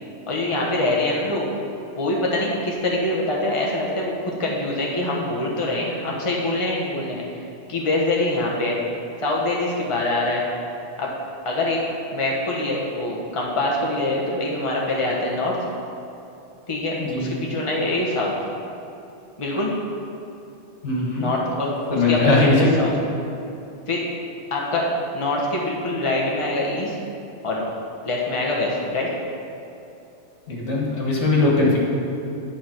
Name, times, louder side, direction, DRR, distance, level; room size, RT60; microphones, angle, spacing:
voice 1, 0.3-1.5 2.0-7.2 7.7-8.8 9.2-10.4 11.0-11.1 11.4-11.8 12.1-15.6 16.7-18.3 19.4-19.7 21.2-22.9 23.9-24.0 24.5-24.9 25.1-27.0 27.4-27.6 28.0-29.1, left 2 dB, 25° left, -3 dB, 1.2 m, -24 dB
voice 2, 17.0-17.3 20.8-21.3 21.9-22.7 30.5-31.8, left 2 dB, 70° left, -3 dB, 1.9 m, -20 dB
10.5 x 5.1 x 5.9 m, 2.9 s
omnidirectional pair, 1.2 m